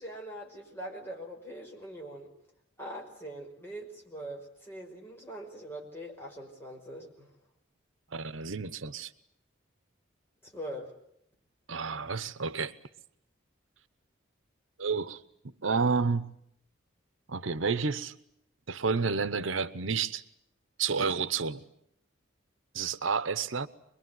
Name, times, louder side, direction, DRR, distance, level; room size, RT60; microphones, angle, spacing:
voice 1, 0.0-2.3 2.8-7.3 10.4-10.9, right 1 dB, 10° left, 5.5 m, -42 dB
voice 2, 8.1-9.1 11.7-12.7 14.8-15.2 15.6-16.3 17.3-18.1 18.7-20.2 20.8-21.6 22.7-23.7, right 5 dB, 85° right, 0.9 m, -30 dB
24.5 x 22.0 x 9.5 m
head